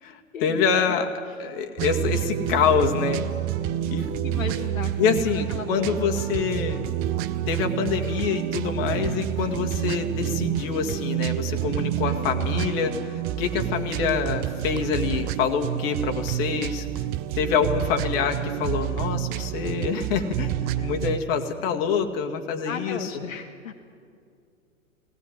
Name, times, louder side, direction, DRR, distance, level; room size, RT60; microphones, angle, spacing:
voice 1, 0.0-1.1 1.4-3.2 3.9-4.1 5.0-6.9 7.5-17.0 17.4-23.1, left 6 dB, 40° left, 4 dB, 2.1 m, -26 dB
sound 1, 1.8-21.2, right 12 dB, 20° right, 0.6 m, -28 dB
voice 2, 4.2-4.9 5.5-6.2 9.0-9.2 20.8-20.9 22.6-23.8, left 6 dB, 65° left, 4 dB, 1.6 m, -36 dB
18.0 x 18.0 x 9.3 m, 2.3 s
figure-of-eight pair, 110°, 42 cm